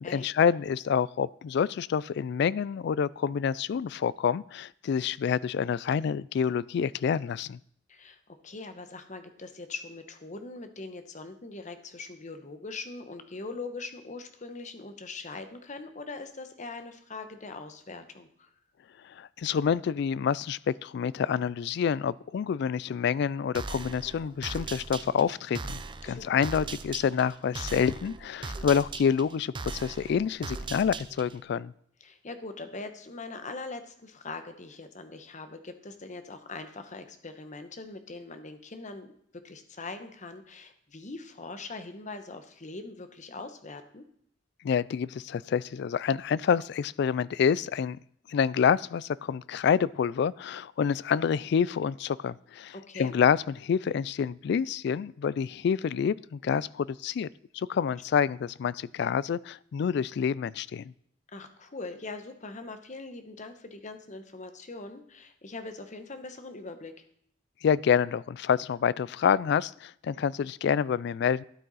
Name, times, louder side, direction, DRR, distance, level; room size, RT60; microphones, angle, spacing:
voice 1, 0.0-7.6 19.0-31.7 44.6-48.0 48.3-57.3 57.5-60.8 67.6-71.4, left 7 dB, 60° left, 0.3 m, -27 dB
voice 2, 7.9-18.5 26.0-26.5 32.0-39.1 39.4-44.0 52.7-53.1 61.3-67.0, left 3 dB, 40° left, 1.0 m, -42 dB
sound 1, 23.5-31.4, right 3 dB, 25° right, 0.6 m, -39 dB
12.5 x 9.1 x 4.1 m
head